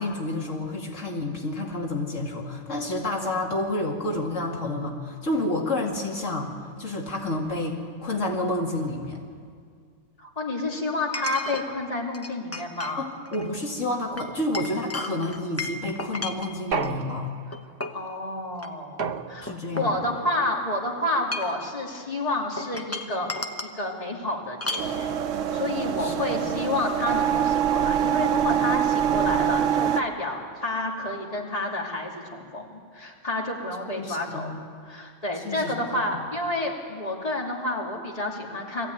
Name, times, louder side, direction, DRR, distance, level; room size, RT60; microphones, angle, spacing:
voice 1, 0.0-6.5 6.8-9.2 13.0-17.3 19.4-20.0 26.0-26.4 33.9-34.6 35.4-36.0, left 1 dB, 85° left, 0 dB, 2.6 m, -29 dB
Chink clink, 7.7-7.8 11.1-11.6 12.1-12.9 13.2-13.5 14.2-16.9 17.5-18.0 18.5-18.7 19.0-20.4 21.1-21.7 22.6-23.8 24.6-24.9, left 2 dB, 15° left, 1.0 m, -34 dB
voice 2, 10.2-13.0 17.9-19.0 19.3-23.3 23.6-25.1 25.5-34.5 34.9-38.9, left 2 dB, 30° left, -1 dB, 2.5 m, -29 dB
sound 1, 16.7-17.7 19.0-19.8, right 6 dB, 55° right, 0.9 m, -32 dB
sound 2, 24.8-30.0, right 9 dB, 90° right, 1.1 m, -24 dB
21.5 x 15.0 x 9.3 m, 2.1 s
omnidirectional pair, 1.3 m